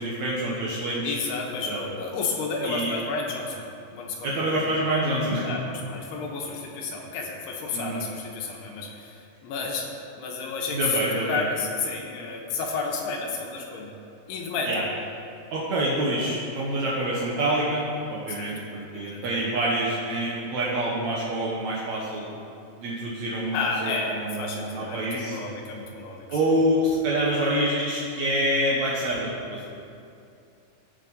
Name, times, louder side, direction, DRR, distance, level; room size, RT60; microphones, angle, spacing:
voice 1, 0.0-1.1 1.6-1.9 2.6-2.9 4.2-5.5 7.7-8.0 10.7-11.4 14.6-14.8 15.5-17.8 18.1-22.3 22.7-25.4 26.3-29.6, right 1 dB, 80° right, -6 dB, 1.6 m, -26 dB
voice 2, 1.0-3.7 3.9-4.8 5.1-13.9 14.3-14.9 18.3-18.5 18.9-19.5 23.5-26.3, left 4 dB, 80° left, 0 dB, 2.8 m, -31 dB
17.0 x 6.3 x 4.1 m, 2.6 s
omnidirectional pair, 5.1 m